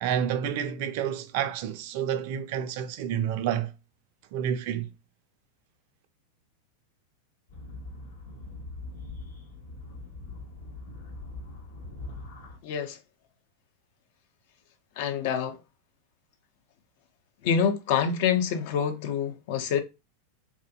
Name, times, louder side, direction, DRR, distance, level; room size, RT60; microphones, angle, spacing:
voice 1, 0.0-3.7 4.3-4.9, right 9 dB, 50° right, 0.3 m, -29 dB
sound 1, 7.5-12.6, left 2 dB, 65° left, 1.0 m, -42 dB
voice 2, 12.6-13.0 15.0-15.6 17.4-19.8, left 7 dB, 50° left, 0.4 m, -26 dB
2.6 x 2.4 x 2.3 m
figure-of-eight pair, 90°, 0 cm